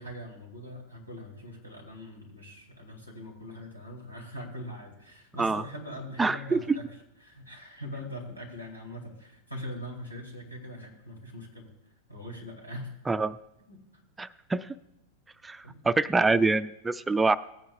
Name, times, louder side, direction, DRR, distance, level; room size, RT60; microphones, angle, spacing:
voice 1, 0.0-6.9 7.2-11.7 12.1-12.9 13.7-14.0 15.6-15.9, left 1 dB, 85° left, 0 dB, 2.7 m, -42 dB
voice 2, 6.2-6.8 13.1-13.4 14.2-14.8 15.4-17.4, right 3 dB, 10° right, 15 dB, 0.3 m, -25 dB
17.5 x 9.2 x 2.5 m, 0.85 s
figure-of-eight pair, 90°, 0 cm